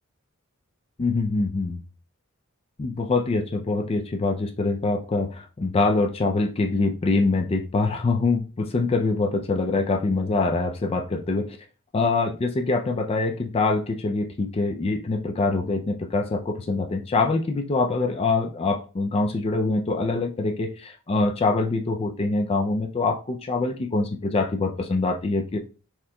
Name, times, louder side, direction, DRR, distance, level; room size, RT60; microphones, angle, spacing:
voice 1, 1.0-1.8 2.8-11.6 11.9-25.6, left 3 dB, 25° left, 0.3 m, -24 dB
4.2 x 3.6 x 2.2 m
head